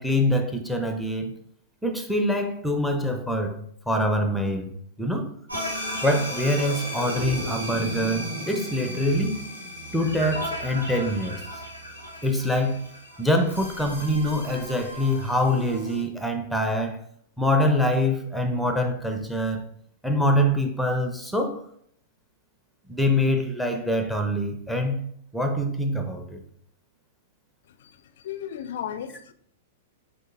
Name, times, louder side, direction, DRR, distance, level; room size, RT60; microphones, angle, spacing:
voice 1, 0.0-1.3 1.8-3.6 3.9-4.7 5.0-5.3 6.0-9.4 9.9-11.4 12.2-12.9 13.2-17.0 17.4-19.6 20.0-21.6 22.9-25.1 25.3-26.4, left 1 dB, ahead, 0.6 m, -24 dB
sound 1, 5.5-16.0, equal, 90° right, 1.6 m, -35 dB
voice 2, 27.7-29.3, left 9 dB, 55° left, 0.4 m, -36 dB
7.4 x 2.7 x 2.5 m
figure-of-eight pair, 100°, 0 cm